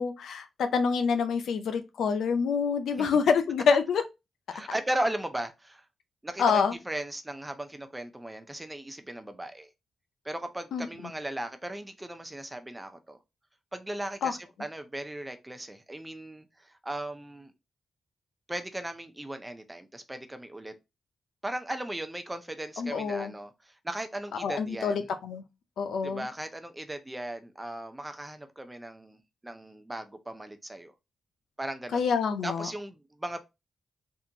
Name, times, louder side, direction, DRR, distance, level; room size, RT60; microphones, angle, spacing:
voice 1, 0.0-4.0 6.4-6.7 10.7-10.9 14.2-14.3 22.8-23.3 24.4-25.4 25.8-26.3 31.9-32.7, left 6 dB, 85° left, 0.5 m, -26 dB
voice 2, 4.5-5.9 6.2-9.7 10.2-13.2 13.7-17.5 18.5-20.7 21.4-25.1 26.0-29.2 29.4-30.9 31.6-32.0 32.4-33.4, right 1 dB, 15° right, 0.5 m, -37 dB
3.6 x 2.4 x 2.7 m
cardioid pair, 105°, 0 cm